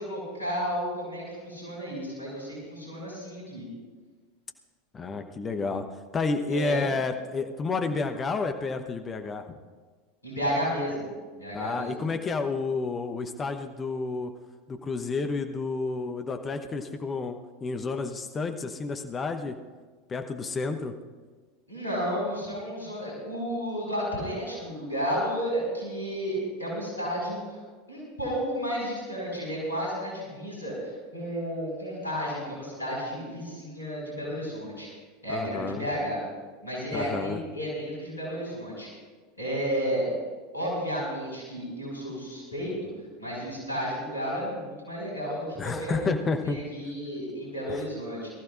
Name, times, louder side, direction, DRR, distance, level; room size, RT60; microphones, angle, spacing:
voice 1, 0.0-3.7 6.5-6.9 10.2-12.0 21.7-27.6 27.9-34.9 35.2-36.2 36.6-38.9 39.3-40.1 40.5-42.9 43.2-46.1 46.4-48.3, equal, 85° left, -5 dB, 5.1 m, -32 dB
voice 2, 4.9-5.8 6.1-9.5 11.5-14.3 14.7-19.6 20.1-20.9 35.3-35.9 36.9-37.4 45.6-46.6 47.7-47.8, left 4 dB, 25° left, 6 dB, 1.0 m, -30 dB
23.0 x 14.5 x 2.5 m, 1.4 s
figure-of-eight pair, 80°, 0 cm